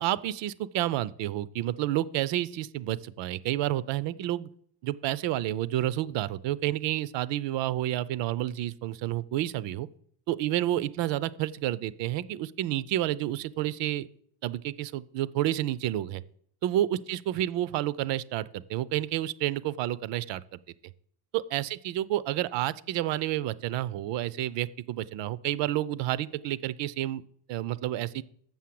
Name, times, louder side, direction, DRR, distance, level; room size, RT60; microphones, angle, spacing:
voice 1, 0.0-4.5 4.8-9.9 10.3-14.1 14.4-16.2 16.6-20.6 21.3-27.2 27.5-28.2, right 14 dB, 85° right, 18 dB, 0.6 m, -30 dB
7.2 x 6.5 x 7.6 m, 0.63 s
cardioid pair, 160°, 42 cm